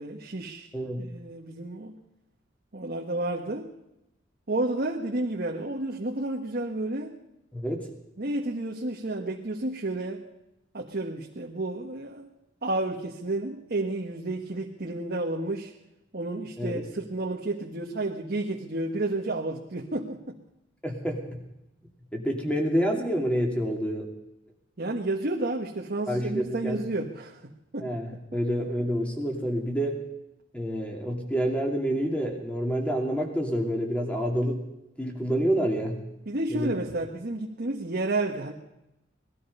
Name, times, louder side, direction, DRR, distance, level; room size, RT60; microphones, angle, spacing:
voice 1, 0.0-0.7 1.0-1.9 2.7-3.7 4.5-7.1 8.2-10.2 10.7-12.3 12.6-15.7 16.1-20.4 24.8-27.9 36.3-38.5, right 2 dB, 55° right, 0 dB, 1.3 m, -31 dB
voice 2, 0.7-1.0 7.5-7.8 16.6-16.8 20.8-21.4 22.1-24.1 26.1-26.8 27.8-30.0 30.5-34.6 35.0-36.0 36.5-36.7, equal, 5° left, 1 dB, 2.7 m, -28 dB
19.5 x 13.0 x 5.5 m, 0.91 s
head